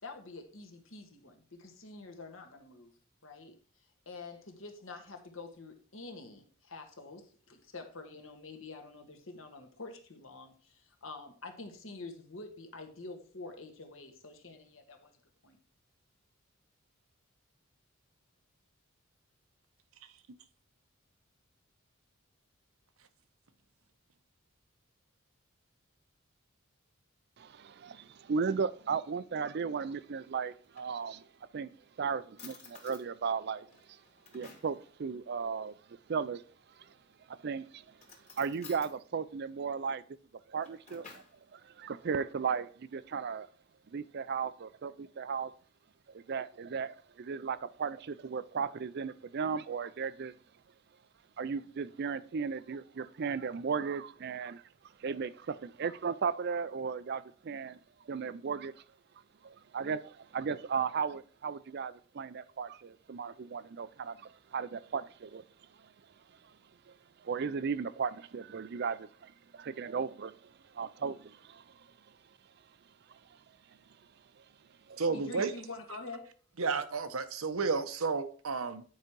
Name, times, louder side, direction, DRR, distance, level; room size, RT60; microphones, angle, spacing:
voice 1, 0.0-2.9 3.2-3.6 4.0-15.2 15.4-15.6 75.1-76.3, left 3 dB, 65° left, 1.6 m, -47 dB
voice 2, 27.4-31.2 31.5-31.7 32.0-34.0 34.3-35.7 36.1-36.4 36.8-36.9 37.3-38.0 38.4-40.0 40.5-41.0 41.5-43.5 43.9-45.5 46.1-50.3 51.4-54.6 55.0-57.8 58.0-58.7 59.4-65.4 65.8-65.9 66.4-66.5 66.9-67.0 67.2-71.9 73.1-73.2 74.4-74.5 74.9-75.0, right 6 dB, 50° right, 0.4 m, -36 dB
Drawer open or close, 30.5-31.4 32.0-32.1 32.4-33.1 33.7-34.8 36.6-37.2 37.9-38.9 40.3-41.4, left 5 dB, 30° left, 1.9 m, -54 dB
voice 3, 75.0-75.5 76.6-78.8, right 4 dB, 75° right, 0.8 m, -32 dB
9.3 x 4.9 x 4.6 m
head